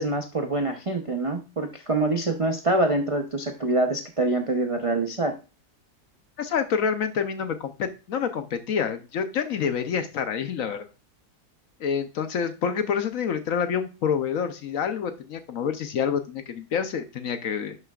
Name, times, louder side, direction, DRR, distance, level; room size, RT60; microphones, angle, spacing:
voice 1, 0.0-5.4, right 2 dB, 45° right, 3 dB, 0.4 m, -25 dB
voice 2, 6.4-10.9 11.8-17.8, left 7 dB, 65° left, 9 dB, 1.0 m, -27 dB
10.5 x 6.5 x 2.4 m, 0.31 s
omnidirectional pair, 1.8 m